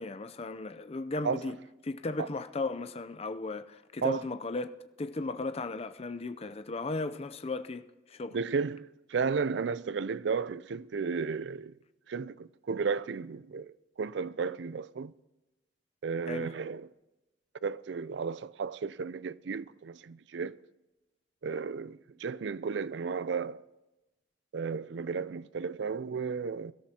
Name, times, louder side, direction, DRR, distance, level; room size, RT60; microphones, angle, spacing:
voice 1, 0.0-1.6 1.8-8.4 16.3-16.5, left 3 dB, 35° left, 0.5 m, -36 dB
voice 2, 8.3-11.7 12.1-15.1 16.0-16.9 17.6-20.6 21.4-23.6 24.5-26.7, right 5 dB, 70° right, 0.4 m, -33 dB
23.0 x 13.0 x 2.9 m
head